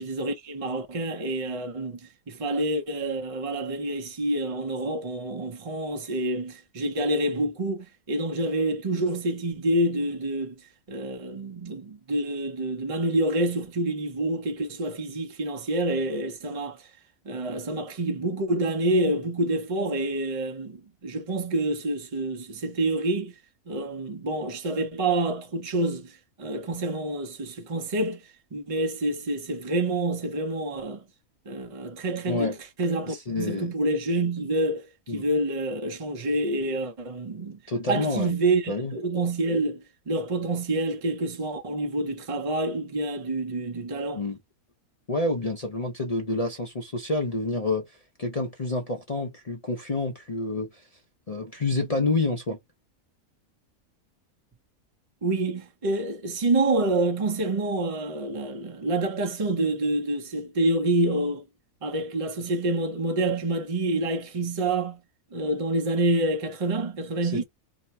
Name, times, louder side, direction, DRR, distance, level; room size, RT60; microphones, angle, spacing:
voice 1, 0.0-16.9 17.2-23.3 23.7-28.2 28.5-31.0 31.5-37.6 37.9-44.2 55.2-61.4 61.8-65.0 65.3-67.4, right 2 dB, 35° right, 0.6 m, -27 dB
voice 2, 33.1-33.7 35.1-35.2 37.7-38.3 38.7-38.9 44.1-44.4 45.1-47.8 48.2-50.7 51.3-52.6 67.2-67.4, left 2 dB, 40° left, 0.6 m, -28 dB
2.9 x 2.2 x 4.1 m
omnidirectional pair, 1.6 m